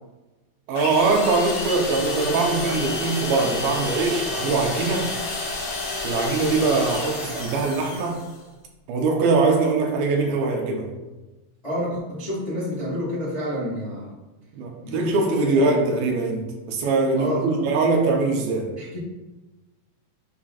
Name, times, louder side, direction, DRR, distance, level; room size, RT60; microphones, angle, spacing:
sound 1, 0.7-8.4, left 3 dB, 60° left, 2.2 m, -30 dB
voice 1, 0.7-5.1 6.0-8.2 8.9-10.9 14.5-16.4 16.7-18.7, right 3 dB, 75° right, 1 dB, 2.6 m, -22 dB
voice 2, 11.6-14.1 14.8-15.8 17.1-17.7 18.8-19.0, equal, 40° left, -8 dB, 0.5 m, -29 dB
7.3 x 5.6 x 2.4 m, 1.1 s
omnidirectional pair, 4.4 m